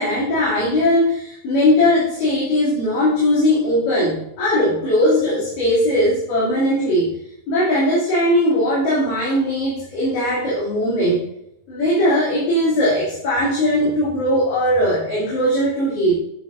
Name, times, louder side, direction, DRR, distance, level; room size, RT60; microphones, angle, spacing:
voice 1, 0.0-7.1 7.5-11.2 11.7-16.1, left 1 dB, 60° left, -9 dB, 4.2 m, -19 dB
11.0 x 7.6 x 2.6 m, 0.80 s
omnidirectional pair, 4.4 m